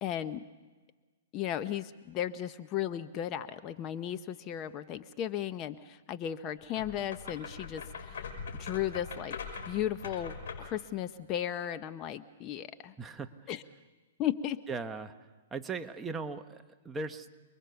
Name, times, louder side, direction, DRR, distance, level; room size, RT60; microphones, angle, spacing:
voice 1, 0.0-0.4 1.3-8.3 8.5-9.4 9.7-12.9 13.5-13.6 14.2-14.6, left 11 dB, 30° left, 11 dB, 0.8 m, -35 dB
sound 1, 6.7-10.8, left 5 dB, 70° left, 5.9 m, -42 dB
voice 2, 13.0-13.5 14.7-15.1 15.5-17.3, right 4 dB, 10° right, 6 dB, 1.0 m, -38 dB
29.0 x 21.5 x 7.0 m, 1.3 s
hypercardioid pair, 145°, 0 cm